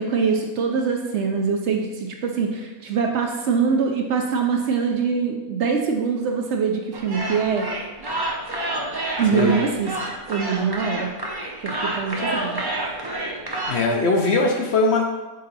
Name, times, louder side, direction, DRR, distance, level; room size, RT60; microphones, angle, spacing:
voice 1, 0.0-7.7 9.2-9.9 10.3-11.1 11.6-12.6, right 5 dB, 65° right, 2 dB, 0.8 m, -23 dB
sound 1, 6.9-13.9, right 1 dB, 25° right, 0.5 m, -29 dB
voice 2, 13.7-15.0, left 3 dB, 60° left, 1 dB, 0.8 m, -20 dB
6.7 x 3.8 x 4.0 m, 1.2 s
omnidirectional pair, 1.5 m